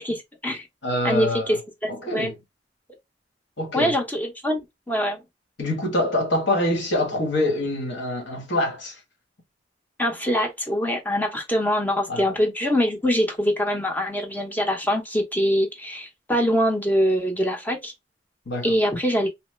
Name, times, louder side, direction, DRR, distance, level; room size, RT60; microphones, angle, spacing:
voice 1, 0.0-0.7 1.0-2.3 3.7-4.6 4.9-5.2 10.0-17.9 18.6-19.3, equal, 10° left, 0.7 m, -24 dB
voice 2, 0.8-1.6 1.9-2.3 3.6-4.0 5.6-9.0 12.1-12.4 18.5-18.7, left 1 dB, 70° left, 1.0 m, -25 dB
3.0 x 2.0 x 3.1 m
head